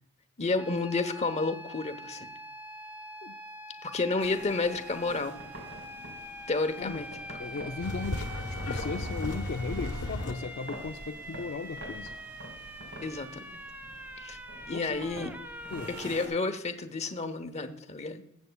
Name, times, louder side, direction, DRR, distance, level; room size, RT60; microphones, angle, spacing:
voice 1, 0.4-2.3 3.8-5.4 6.5-7.1 13.0-13.6 14.2-14.4 14.7-15.3 15.9-18.2, left 3 dB, 30° left, 8 dB, 0.9 m, -31 dB
sound 1, 0.6-16.1, right 1 dB, 10° right, 0.6 m, -44 dB
sound 2, 4.2-16.3, right 1 dB, 60° right, 4.0 m, -47 dB
voice 2, 7.4-12.1 14.7-15.0 15.7-15.9, left 4 dB, 50° left, 4 dB, 0.5 m, -37 dB
sound 3, 7.8-10.3, left 1 dB, 85° left, 1.1 m, -34 dB
20.0 x 8.2 x 2.3 m, 0.74 s
head